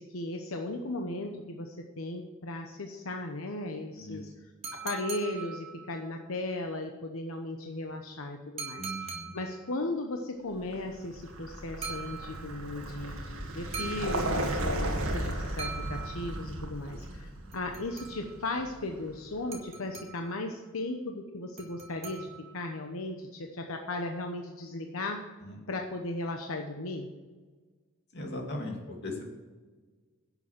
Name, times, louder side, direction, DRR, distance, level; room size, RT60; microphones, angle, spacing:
voice 1, 0.0-4.3 4.8-22.3 22.5-25.2 25.7-27.1, left 2 dB, 85° left, 3 dB, 1.0 m, -36 dB
sound 1, 4.6-6.1 8.6-9.7 11.8-12.7 13.7-14.8 15.6-16.6 17.5-18.5 19.5-20.4 21.6-22.7, right 5 dB, 30° right, 1.8 m, -42 dB
voice 2, 8.7-9.3 25.4-25.6 28.1-29.3, left 1 dB, 55° left, 0 dB, 2.6 m, -38 dB
Vehicle, 10.6-19.4, right 1 dB, 90° right, 1.8 m, -35 dB
11.0 x 7.0 x 7.5 m, 1.4 s
head